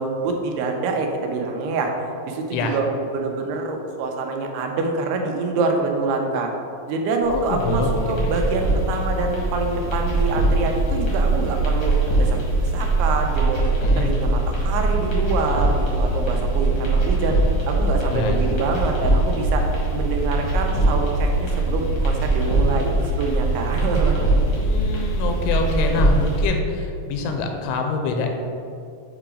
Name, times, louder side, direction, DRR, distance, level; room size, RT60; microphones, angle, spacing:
voice 1, 0.0-1.9 2.3-6.5 6.9-11.9 12.2-13.6 14.0-17.4 17.7-19.6 19.9-24.3, right 3 dB, 90° right, 2 dB, 2.8 m, -26 dB
sound 1, 7.2-26.5, right 2 dB, 65° left, 1.1 m, -22 dB
voice 2, 7.3-8.2 13.8-14.2 18.1-18.5 24.6-28.3, left 3 dB, 85° left, 4 dB, 2.5 m, -25 dB
7.9 x 3.0 x 4.9 m, 2.5 s
omnidirectional pair, 4.6 m